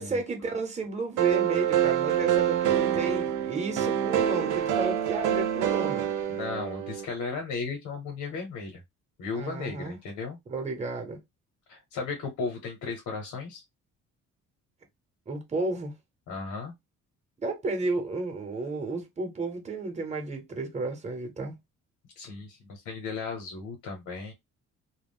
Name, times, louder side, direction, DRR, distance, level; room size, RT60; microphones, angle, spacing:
voice 1, 0.0-6.1 9.3-10.0 10.5-11.2 15.3-15.9 17.4-21.5, right 3 dB, 25° right, 0.9 m, -32 dB
sound 1, 1.2-7.1, right 10 dB, 85° right, 0.6 m, -26 dB
voice 2, 6.3-8.8 9.2-10.4 11.7-13.6 16.3-16.7 22.2-24.3, left 4 dB, 85° left, 1.0 m, -35 dB
2.3 x 2.0 x 3.5 m
cardioid pair, 90°, 30 cm